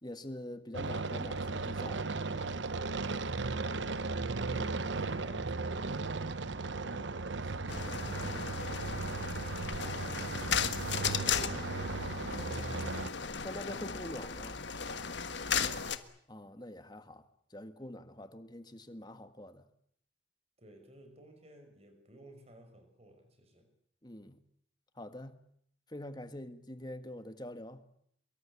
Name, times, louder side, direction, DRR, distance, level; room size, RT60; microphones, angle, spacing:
voice 1, 0.0-2.1 4.5-4.7 9.8-10.0 12.3-13.0 13.4-14.6 16.3-19.7 24.0-24.4 24.9-25.4 25.9-27.8, left 1 dB, 20° left, 1.7 m, -45 dB
sound 1, 0.7-13.1, right 3 dB, 75° right, 1.0 m, -36 dB
voice 2, 4.5-11.7 15.4-16.1 18.2-18.3 20.6-23.7, right 1 dB, 35° right, 5.6 m, -56 dB
sound 2, 7.7-16.0, left 6 dB, 70° left, 1.5 m, -36 dB
24.0 x 23.0 x 8.4 m
head